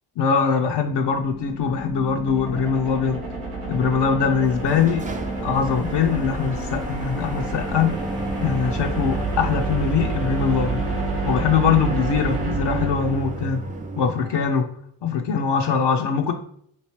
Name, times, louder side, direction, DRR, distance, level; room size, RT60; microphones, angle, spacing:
voice 1, 0.2-3.2 3.6-5.1 5.4-8.0 8.4-10.9 11.2-13.7 14.0-14.7 15.0-16.3, left 6 dB, 60° left, 4 dB, 0.5 m, -22 dB
sound 1, 0.7-13.8, right 2 dB, 85° right, 0.9 m, -29 dB
sound 2, 4.3-14.6, right 3 dB, 20° right, 0.3 m, -35 dB
3.0 x 2.7 x 3.0 m, 0.67 s
supercardioid pair, 40°, 48 cm